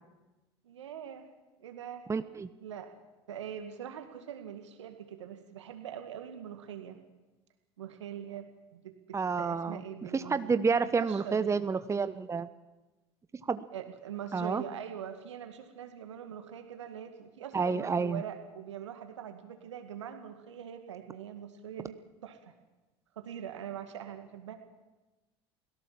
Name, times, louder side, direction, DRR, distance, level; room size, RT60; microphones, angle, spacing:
voice 1, 0.6-1.3 1.6-2.1 2.6-3.0 3.3-7.0 7.8-11.6 13.7-22.0 22.2-22.5 23.2-24.5, right 9 dB, 85° right, 7 dB, 2.0 m, -43 dB
voice 2, 2.1-2.5 9.1-9.8 10.1-12.5 13.5-13.6 14.3-14.6 17.5-18.2, right 5 dB, 20° right, 12 dB, 1.0 m, -29 dB
28.5 x 17.5 x 7.6 m, 1.1 s
hypercardioid pair, 75°, 15 cm